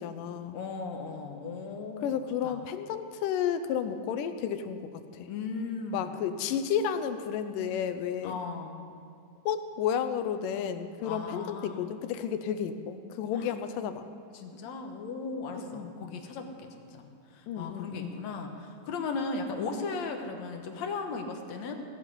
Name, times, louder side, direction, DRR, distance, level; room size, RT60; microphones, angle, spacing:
voice 1, 0.0-0.6 2.0-5.3 5.9-8.4 9.5-14.1 15.5-15.9 17.5-18.2, left 8 dB, 90° left, 10 dB, 2.4 m, -32 dB
voice 2, 0.5-2.6 5.3-6.2 8.2-8.9 11.0-12.0 13.4-13.5 14.3-21.8, left 4 dB, 65° left, 4 dB, 2.2 m, -37 dB
18.0 x 7.7 x 9.6 m, 2.3 s
omnidirectional pair, 3.7 m